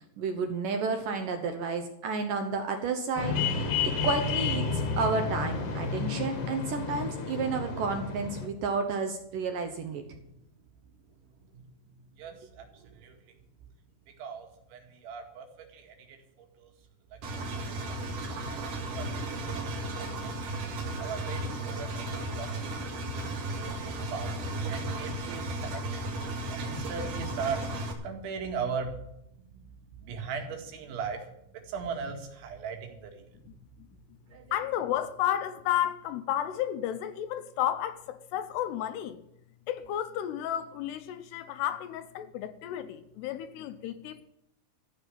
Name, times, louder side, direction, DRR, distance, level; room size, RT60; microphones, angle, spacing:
voice 1, 0.2-10.0 34.3-34.4, right 4 dB, 70° right, 2.1 m, -31 dB
sound 1, 3.2-8.5, left 5 dB, 50° left, 1.9 m, -31 dB
voice 2, 12.2-13.2 14.2-16.2 16.6-16.7 17.1-20.6 21.0-22.5 22.8-23.7 24.1-24.3 24.7-25.8 26.5-28.9 30.0-33.3, right 5 dB, 85° right, 4.4 m, -39 dB
Engine, 17.2-27.9, right 2 dB, 55° right, 3.1 m, -35 dB
voice 3, 33.4-33.9 34.5-39.2 39.7-44.2, left 11 dB, 80° left, 2.6 m, -32 dB
14.0 x 6.5 x 9.8 m
omnidirectional pair, 5.2 m